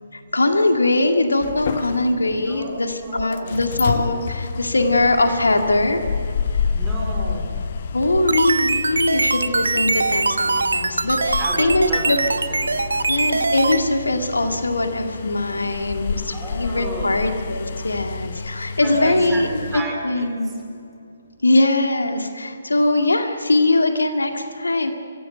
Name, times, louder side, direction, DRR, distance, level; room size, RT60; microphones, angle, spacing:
voice 1, 0.1-6.7 7.9-12.2 13.1-20.6 21.4-24.9, left 2 dB, 70° left, 5 dB, 2.0 m, -21 dB
sound 1, 1.4-19.8, left 5 dB, 45° left, 1.0 m, -30 dB
voice 2, 3.0-3.6 6.7-7.8 11.4-12.6 12.9-13.0 16.3-17.2 18.8-19.4 19.7-20.5, right 2 dB, 10° right, -1 dB, 4.7 m, -31 dB
sound 2, 8.0-13.8, right 3 dB, 65° right, 1.1 m, -22 dB
24.5 x 16.0 x 9.1 m, 2.5 s
figure-of-eight pair, 135°, 0 cm